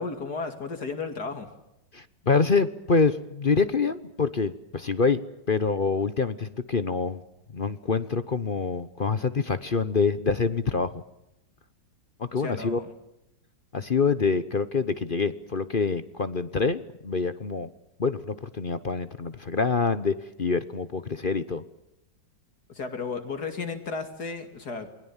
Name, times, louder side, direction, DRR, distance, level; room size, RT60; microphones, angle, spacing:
voice 1, 0.0-1.5 12.3-12.9 22.7-24.9, left 4 dB, 60° left, 7 dB, 2.9 m, -34 dB
voice 2, 1.9-5.2 5.5-7.2 7.5-11.0 12.2-12.8 13.7-17.7 18.0-21.6, left 4 dB, 40° left, 13 dB, 0.9 m, -26 dB
28.5 x 21.5 x 7.3 m, 0.88 s
omnidirectional pair, 2.0 m